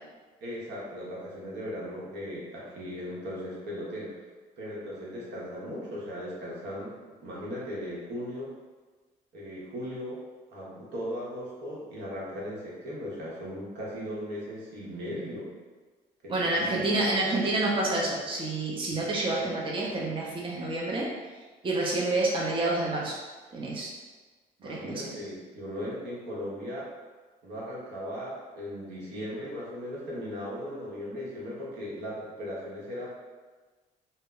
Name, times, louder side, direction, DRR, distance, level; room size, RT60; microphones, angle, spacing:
voice 1, 0.4-4.1 4.6-6.9 7.2-8.5 9.3-10.2 10.5-15.5 16.2-17.0 24.6-26.9 27.4-33.1, equal, 75° right, -6 dB, 0.9 m, -37 dB
voice 2, 16.3-21.1 21.6-23.2 23.5-23.9 24.6-25.1, right 2 dB, 30° right, -4 dB, 0.6 m, -28 dB
2.1 x 2.1 x 3.7 m, 1.3 s
supercardioid pair, 70°, 18 cm